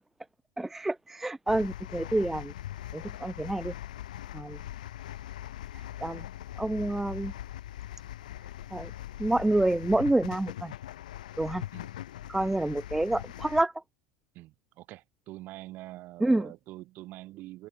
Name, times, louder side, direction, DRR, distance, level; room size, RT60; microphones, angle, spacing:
voice 1, 0.6-2.5 2.9-3.7 4.3-4.6 6.0-6.2 6.6-7.3 8.7-8.9 9.2-10.7 11.4-11.6 12.3-13.7 16.2-16.5, right 2 dB, 5° right, 0.4 m, -28 dB
sound 1, 1.5-13.6, left 13 dB, 65° left, 3.8 m, -41 dB
voice 2, 14.3-17.7, right 17 dB, 45° right, 2.2 m, -45 dB
open air
figure-of-eight pair, 80°, 5 cm